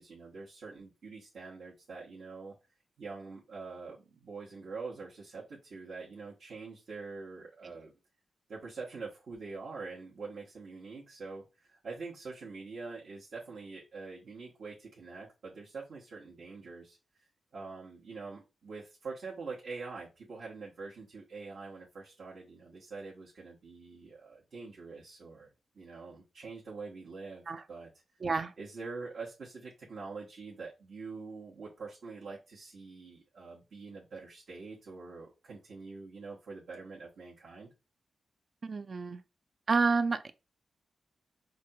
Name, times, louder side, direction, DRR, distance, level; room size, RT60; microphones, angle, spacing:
voice 1, 0.0-2.6 3.0-7.9 8.5-27.9 28.6-37.7, right 4 dB, 65° right, 1.0 m, -45 dB
voice 2, 28.2-28.5 38.6-39.2 39.7-40.3, right 4 dB, 45° right, 0.3 m, -29 dB
5.1 x 2.3 x 2.7 m
wide cardioid pair, 120°, 0 cm